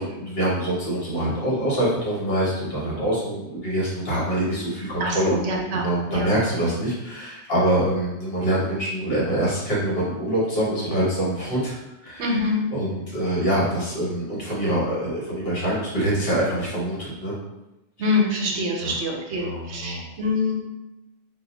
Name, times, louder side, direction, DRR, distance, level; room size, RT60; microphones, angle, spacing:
voice 1, 0.0-5.4 5.7-12.3 12.7-17.3 18.8-18.9 19.4-20.0, right 1 dB, 55° left, -6 dB, 1.3 m, -25 dB
voice 2, 5.0-6.3 12.2-12.7 18.0-20.6, left 2 dB, 70° right, 0 dB, 0.9 m, -25 dB
2.5 x 2.2 x 4.0 m, 0.97 s
omnidirectional pair, 1.2 m